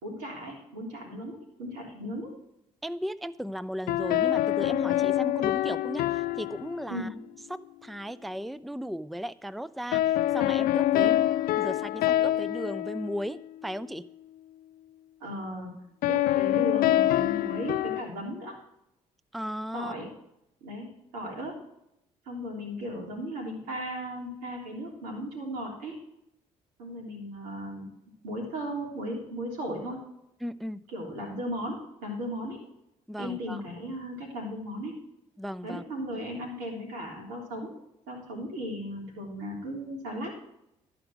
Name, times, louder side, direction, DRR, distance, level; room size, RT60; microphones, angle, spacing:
voice 1, 0.0-2.3 6.9-7.1 10.9-11.1 15.2-15.7 16.1-18.6 19.7-20.1 20.6-21.6 22.2-26.0 26.8-27.9 28.2-30.0 30.9-32.6 33.2-34.9 35.6-37.7 38.1-40.3, equal, 85° right, 0 dB, 3.4 m, -36 dB
voice 2, 2.8-7.1 7.5-14.1 19.3-19.9 30.4-30.8 33.1-33.6 35.4-35.8, equal, ahead, 17 dB, 0.4 m, -36 dB
sound 1, 3.9-7.2 9.9-13.8 16.0-18.0, left 13 dB, 70° left, 0.4 m, -26 dB
13.0 x 5.1 x 5.9 m, 0.79 s
supercardioid pair, 60°, 15 cm